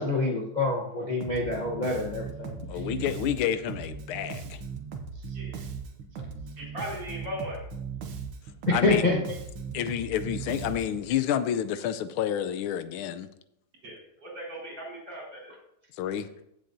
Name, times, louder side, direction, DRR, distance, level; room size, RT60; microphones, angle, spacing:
voice 1, 0.0-2.5 8.7-9.2, left 2 dB, 35° left, -1 dB, 0.7 m, -26 dB
Bass guitar, 1.2-11.1, right 5 dB, 80° right, 1.9 m, -38 dB
voice 2, 2.7-4.6 8.7-9.2 9.7-13.3 16.0-16.3, left 10 dB, 85° left, 12 dB, 1.5 m, -29 dB
voice 3, 6.6-7.7 13.8-15.6, equal, 55° right, -4 dB, 5.2 m, -38 dB
16.0 x 7.3 x 2.6 m, 0.79 s
omnidirectional pair, 2.3 m